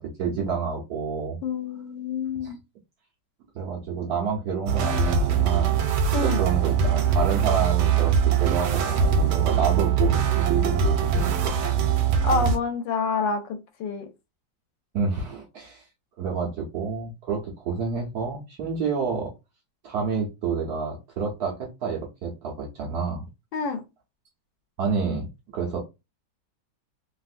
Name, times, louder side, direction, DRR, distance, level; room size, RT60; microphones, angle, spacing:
voice 1, 0.0-1.4 2.4-2.5 3.5-5.9 6.2-11.5 14.9-15.8 16.2-19.3 19.8-23.3 24.8-25.8, right 5 dB, 60° right, 1.1 m, -29 dB
voice 2, 1.4-2.6 6.1-6.4 12.2-14.1 23.5-23.8, left 5 dB, 75° left, 1.3 m, -27 dB
sound 1, 4.7-12.6, right 7 dB, 90° right, 1.5 m, -22 dB
3.5 x 2.5 x 2.5 m
omnidirectional pair, 2.2 m